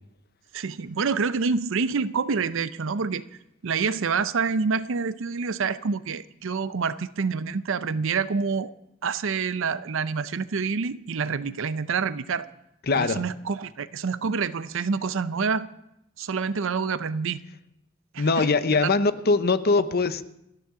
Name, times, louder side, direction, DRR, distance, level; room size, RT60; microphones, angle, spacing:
voice 1, 0.5-3.2 3.6-8.7 9.0-12.5 12.9-15.7 16.2-17.4 18.1-18.5 18.8-18.9, right 5 dB, 65° right, 0.6 m, -27 dB
voice 2, 12.9-13.2 18.2-20.2, left 3 dB, 50° left, 0.8 m, -22 dB
28.0 x 10.0 x 3.7 m
head